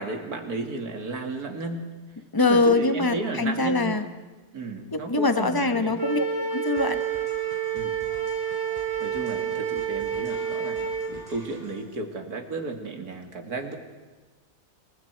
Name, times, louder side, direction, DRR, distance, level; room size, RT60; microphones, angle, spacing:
voice 1, 0.0-1.9 2.4-4.0 4.5-6.0 7.7-7.9 9.0-13.8, right 3 dB, 60° right, 4 dB, 2.8 m, -33 dB
voice 2, 2.3-4.1 4.9-7.0, left 3 dB, 15° left, 8 dB, 1.0 m, -23 dB
Wind instrument woodwind instrument, 6.0-11.1, right 8 dB, 45° right, 3.1 m, -29 dB
sound 1, 6.7-12.0, left 1 dB, 25° right, 5.0 m, -47 dB
29.5 x 23.5 x 4.7 m, 1.3 s
omnidirectional pair, 1.8 m